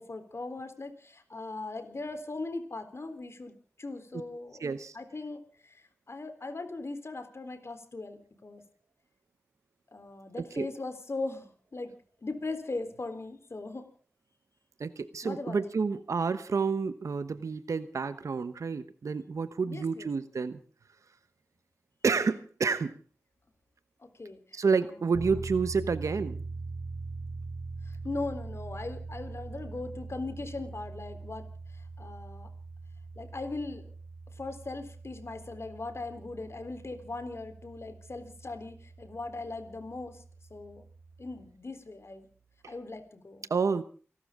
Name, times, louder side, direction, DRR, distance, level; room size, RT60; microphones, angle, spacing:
voice 1, 0.0-8.6 9.9-11.9 12.2-13.9 15.2-15.8 19.7-20.1 24.0-24.6 27.8-31.5 31.7-32.5 33.2-33.9 34.3-40.2 40.5-40.8 41.2-42.3 42.7-43.5, left 3 dB, 60° left, 9 dB, 3.8 m, -39 dB
voice 2, 4.6-5.0 10.6-10.7 14.8-20.6 22.0-23.0 24.5-26.4 42.6-42.7 43.5-43.8, right 5 dB, 85° right, 12 dB, 1.0 m, -29 dB
sound 1, 25.1-41.5, right 3 dB, 60° right, 3.1 m, -43 dB
29.5 x 12.5 x 3.7 m, 0.40 s
cardioid pair, 40°, 5 cm